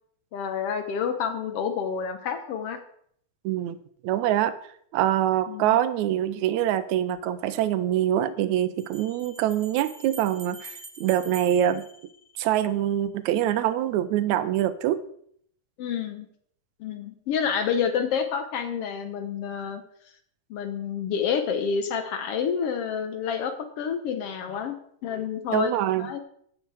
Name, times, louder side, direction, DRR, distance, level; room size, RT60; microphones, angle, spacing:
voice 1, 0.3-2.8 5.5-5.8 15.8-16.3 16.8-19.8 20.5-24.7 25.0-25.7 26.0-26.2, left 7 dB, 65° left, 8 dB, 1.5 m, -28 dB
voice 2, 3.5-3.8 4.0-4.6 4.9-11.8 12.4-15.0 25.5-26.1, right 11 dB, 80° right, 13 dB, 1.9 m, -24 dB
Bell, 7.1-7.2 8.8-12.7, right 2 dB, 65° right, 0.4 m, -46 dB
12.5 x 8.0 x 4.8 m, 0.65 s
omnidirectional pair, 3.6 m